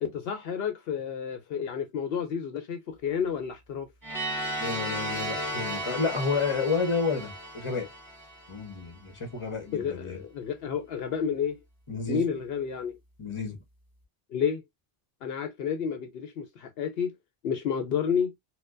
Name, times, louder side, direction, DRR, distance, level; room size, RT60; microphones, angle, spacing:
voice 1, 0.0-3.9 9.7-11.6 12.1-13.0 14.3-14.6 15.2-17.1 17.4-18.3, left 7 dB, 75° left, 0.8 m, -30 dB
sound 1, 4.0-8.9, right 1 dB, 20° right, 1.4 m, -35 dB
voice 2, 4.6-7.9 8.5-10.2 11.9-12.4 13.2-13.6, left 4 dB, 30° left, 0.9 m, -30 dB
4.3 x 2.1 x 2.4 m
omnidirectional pair, 1.0 m